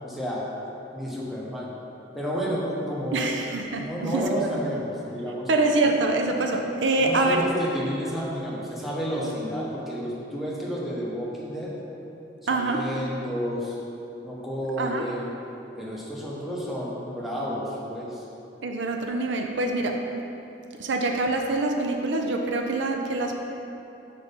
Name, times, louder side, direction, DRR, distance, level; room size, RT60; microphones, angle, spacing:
voice 1, 0.0-0.5 0.9-1.7 2.1-3.3 3.7-5.5 7.0-11.7 12.5-13.8 14.2-15.3 15.8-18.2, equal, ahead, -7 dB, 1.1 m, -31 dB
voice 2, 3.1-4.5 5.5-7.4 12.5-12.9 14.8-15.1 18.6-20.0 20.8-23.3, right 2 dB, 85° right, 3 dB, 0.5 m, -25 dB
6.3 x 4.1 x 5.3 m, 2.9 s
head